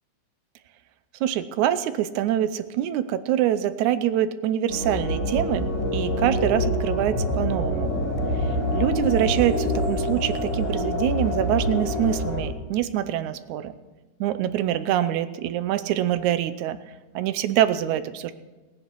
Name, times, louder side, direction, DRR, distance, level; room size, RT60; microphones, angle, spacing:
voice 1, 1.2-7.9 8.4-8.5 8.7-13.7 14.2-16.8 17.2-18.3, right 11 dB, 80° right, 13 dB, 2.1 m, -25 dB
sound 1, 4.7-12.4, left 1 dB, 55° left, 4.9 m, -26 dB
17.0 x 10.0 x 6.1 m, 1.2 s
omnidirectional pair, 3.4 m